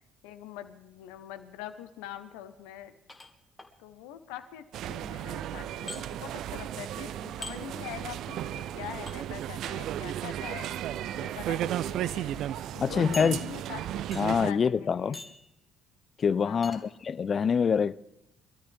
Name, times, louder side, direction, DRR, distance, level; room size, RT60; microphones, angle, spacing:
voice 1, 0.2-2.9 3.8-4.6 4.9-10.7 11.1-12.4 12.7-14.0 14.4-15.2 16.4-16.9, left 11 dB, 75° left, 1.0 m, -44 dB
sound 1, 3.1-3.7 5.9-6.0 7.4-7.6 9.1-9.2 10.5-10.8 11.5-11.6 12.0-12.1 13.1-13.8 14.1-14.5 15.1-15.5 16.6-16.8, left 2 dB, 20° left, 2.0 m, -42 dB
sound 2, 4.7-14.5, right 11 dB, 60° right, 0.4 m, -34 dB
voice 2, 12.8-13.5 14.2-15.2 16.2-18.0, left 6 dB, 45° left, 0.4 m, -26 dB
24.5 x 13.0 x 3.5 m
hypercardioid pair, 50°, 0 cm